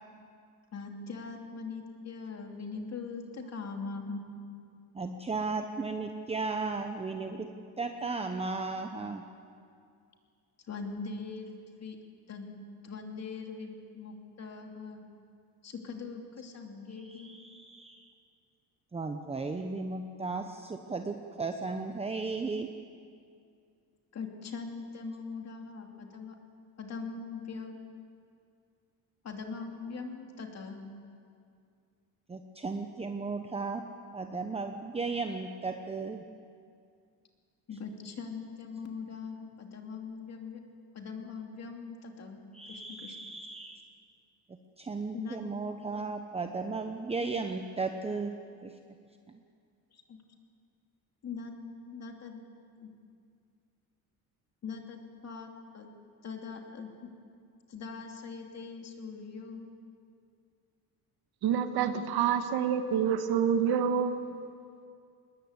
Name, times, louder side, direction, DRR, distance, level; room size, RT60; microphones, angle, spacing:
voice 1, 0.7-4.3 10.7-12.0 12.3-12.5 12.8-15.0 15.6-17.3 24.1-26.4 26.8-27.8 29.2-30.8 37.7-40.6 40.9-42.4 42.7-43.2 45.1-45.4 49.9-50.2 51.2-51.6 51.9-52.4 52.8-52.9 54.6-55.9 56.2-57.1 57.7-59.7, left 4 dB, 40° left, 3 dB, 2.8 m, -41 dB
voice 2, 4.9-7.5 7.8-9.2 17.0-18.1 18.9-22.7 32.3-33.8 34.1-36.2 42.5-43.9 44.5-48.8 49.3-49.4, right 4 dB, 15° right, 5 dB, 0.9 m, -35 dB
voice 3, 61.4-64.3, right 8 dB, 70° right, 8 dB, 1.7 m, -27 dB
20.5 x 20.5 x 8.2 m, 2.3 s
cardioid pair, 130°, 39 cm